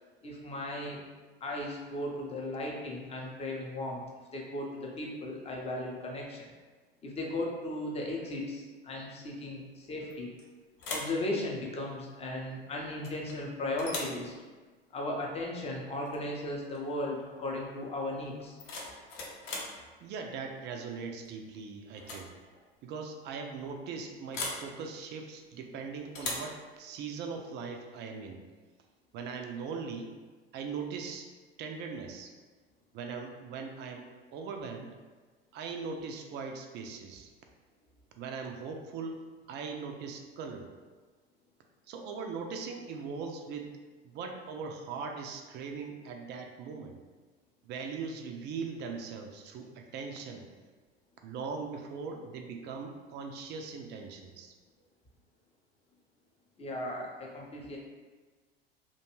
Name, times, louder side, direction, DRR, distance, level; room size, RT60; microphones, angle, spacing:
voice 1, 0.2-1.0 1.4-4.0 4.3-6.5 7.0-10.3 10.9-14.3 14.9-18.6 56.6-57.8, left 1 dB, 20° left, -1 dB, 0.6 m, -36 dB
sound 1, 10.1-10.4 10.8-11.2 13.0-13.4 13.8-14.2 16.1-16.2 16.6-16.9 18.4-19.8 21.2-21.5 21.9-22.3 22.5-22.6 24.3-24.7 26.1-26.5, left 2 dB, 55° left, 0.7 m, -39 dB
voice 2, 20.0-22.3 22.8-28.4 29.1-30.1 30.5-31.3 31.6-32.3 32.9-34.9 35.5-37.3 38.2-39.2 39.5-40.7 41.9-43.7 44.0-47.0 47.6-50.6 51.2-54.5, right 5 dB, 35° right, 3 dB, 0.4 m, -40 dB
2.5 x 2.2 x 2.9 m, 1.4 s
hypercardioid pair, 75°, 31 cm